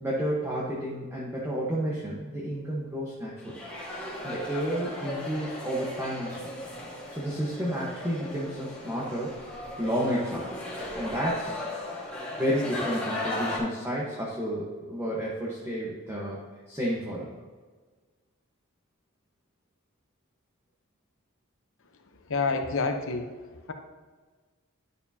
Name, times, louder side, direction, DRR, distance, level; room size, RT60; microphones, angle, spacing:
voice 1, 0.0-3.6 4.2-6.4 7.1-9.3 9.8-10.5 11.0-11.6 12.4-16.4 16.7-17.3, equal, 15° right, -6 dB, 1.2 m, -31 dB
sound 1, 3.4-13.6, left 1 dB, 5° left, 1.7 m, -36 dB
voice 2, 22.3-23.3, left 4 dB, 65° left, 5 dB, 0.9 m, -27 dB
11.0 x 6.7 x 2.8 m, 1.4 s
head